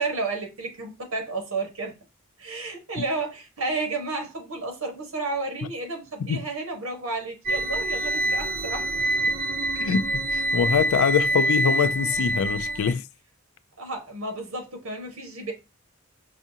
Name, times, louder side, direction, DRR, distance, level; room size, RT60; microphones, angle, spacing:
voice 1, 0.0-1.9 2.4-8.9 13.8-15.5, right 3 dB, 85° right, 1.3 m, -31 dB
sound 1, 7.5-12.9, right 1 dB, 45° right, 0.6 m, -26 dB
voice 2, 9.7-13.0, left 7 dB, 80° left, 0.3 m, -24 dB
5.5 x 2.4 x 2.7 m
head